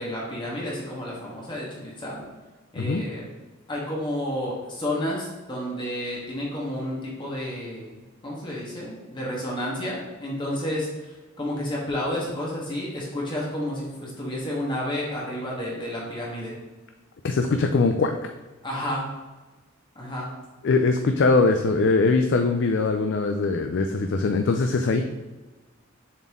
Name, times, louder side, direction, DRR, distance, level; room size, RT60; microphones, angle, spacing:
voice 1, 0.0-2.2 2.7-3.2 3.7-16.5 18.6-19.1 19.9-20.3, left 1 dB, 25° left, -5 dB, 1.4 m, -31 dB
voice 2, 17.2-18.1 20.6-25.0, left 3 dB, 60° left, 5 dB, 0.4 m, -21 dB
7.0 x 4.2 x 3.6 m, 1.2 s
head